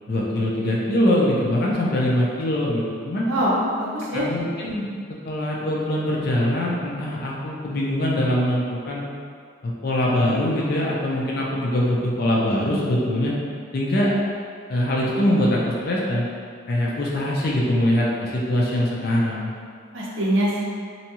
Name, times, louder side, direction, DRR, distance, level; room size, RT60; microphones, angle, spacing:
voice 1, 0.1-3.3 4.1-4.9 5.2-9.0 9.6-13.3 13.7-14.1 14.7-16.2 16.7-19.5, left 1 dB, 50° left, -4 dB, 0.5 m, -23 dB
voice 2, 3.3-4.2 19.9-20.6, equal, 65° right, -5 dB, 0.5 m, -23 dB
2.7 x 2.2 x 2.8 m, 2.1 s
head